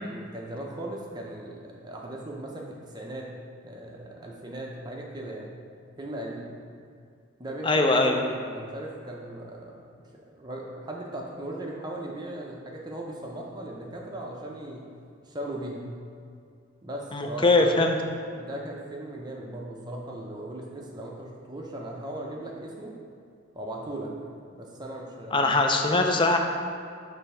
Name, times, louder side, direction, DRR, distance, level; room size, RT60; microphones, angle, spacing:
voice 1, 0.0-3.3 3.6-5.5 6.0-6.5 7.4-9.8 10.1-14.8 15.2-15.9 16.8-17.8 18.3-22.9 23.5-24.1 24.5-25.5 25.9-26.0, right 1 dB, 20° right, -1 dB, 0.6 m, -38 dB
voice 2, 7.6-8.2 17.1-18.0 25.3-26.4, left 2 dB, 25° left, 3 dB, 0.4 m, -21 dB
6.6 x 3.4 x 5.5 m, 2.3 s
head